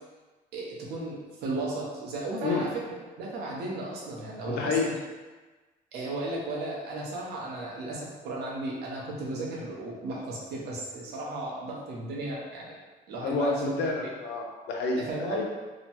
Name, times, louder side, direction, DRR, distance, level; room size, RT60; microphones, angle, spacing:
voice 1, 0.5-4.9 5.9-12.8 13.1-13.7 15.0-15.4, right 2 dB, 75° right, -3 dB, 0.7 m, -35 dB
voice 2, 4.5-4.9 13.2-15.0 15.3-15.4, left 3 dB, 80° left, 0 dB, 0.5 m, -29 dB
2.8 x 2.1 x 2.8 m, 1.3 s
cardioid pair, 110°, 17 cm